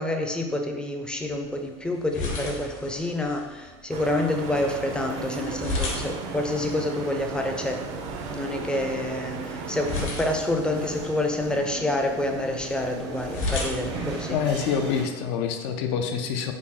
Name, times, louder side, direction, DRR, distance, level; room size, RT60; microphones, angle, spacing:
voice 1, 0.0-7.9 8.3-14.4, left 1 dB, 5° left, 3 dB, 0.4 m, -28 dB
sound 1, 1.1-15.0, left 3 dB, 50° left, 1.1 m, -37 dB
sound 2, 3.9-10.1, right 5 dB, 55° right, 0.4 m, -37 dB
sound 3, 4.4-15.0, right 2 dB, 80° right, 0.9 m, -38 dB
voice 2, 14.3-16.5, left 7 dB, 65° left, 6 dB, 0.4 m, -26 dB
3.6 x 2.1 x 4.0 m, 1.3 s
hypercardioid pair, 95°, 14 cm